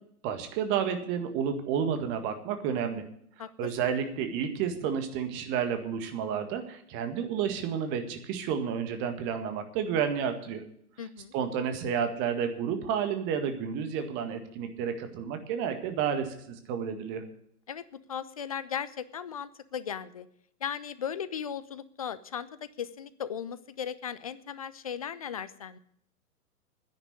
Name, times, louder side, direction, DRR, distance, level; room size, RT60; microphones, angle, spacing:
voice 1, 0.2-3.0 3.6-10.6 11.3-17.2, right 7 dB, 25° right, 7 dB, 1.8 m, -31 dB
voice 2, 3.4-3.7 11.0-11.3 17.7-20.3 20.6-22.5 22.8-25.8, left 8 dB, 25° left, 16 dB, 0.4 m, -37 dB
10.5 x 9.9 x 9.5 m, 0.69 s
figure-of-eight pair, 115°, 45 cm